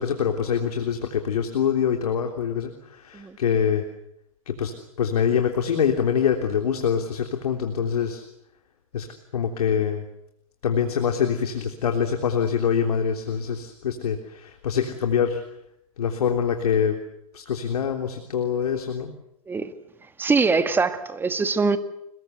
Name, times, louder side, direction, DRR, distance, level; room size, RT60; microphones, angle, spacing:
voice 1, 0.0-3.9 4.5-8.2 8.9-9.1 9.3-10.0 10.6-15.4 16.0-17.0 17.3-19.1, left 7 dB, 80° left, 3.5 m, -24 dB
voice 2, 20.2-21.8, right 4 dB, 10° right, 1.9 m, -23 dB
28.5 x 21.5 x 8.2 m
hypercardioid pair, 130°, 19 cm